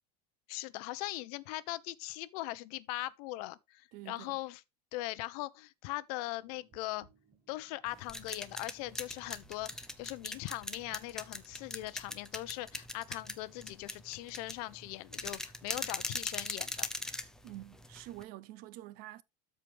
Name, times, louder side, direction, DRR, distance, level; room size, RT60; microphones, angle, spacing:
voice 1, 0.5-4.6 4.9-7.1 7.5-16.9, left 18 dB, 65° left, 0.7 m, -40 dB
voice 2, 3.9-4.4 17.4-19.2, right 15 dB, 45° right, 0.6 m, -47 dB
sound 1, 6.4-12.9, right 3 dB, 15° right, 2.0 m, -66 dB
sound 2, 7.9-18.2, left 1 dB, 5° left, 0.6 m, -41 dB
13.0 x 4.8 x 3.3 m
cardioid pair, 165°, 21 cm